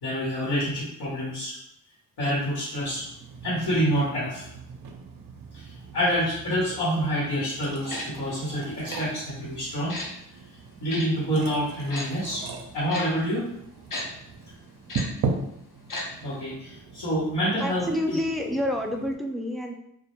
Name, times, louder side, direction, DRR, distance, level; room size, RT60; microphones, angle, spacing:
voice 1, 0.0-1.6 2.2-3.0 3.4-4.5 5.5-10.0 10.7-12.4 12.7-13.4 16.2-18.2, equal, 75° left, -7 dB, 1.0 m, -27 dB
sound 1, 2.8-19.1, right 4 dB, 60° right, 0.5 m, -39 dB
Tick-tock, 7.9-8.1 8.9-9.0 9.9-10.1 10.9-11.0 11.9-12.1 12.9-13.0 13.9-14.0 14.9-15.0 15.9-16.0 16.3-16.4, left 2 dB, 55° left, 0.7 m, -33 dB
voice 2, 17.6-19.7, left 1 dB, ahead, 2 dB, 0.3 m, -28 dB
2.1 x 2.1 x 2.9 m, 0.77 s
supercardioid pair, 45°, 39 cm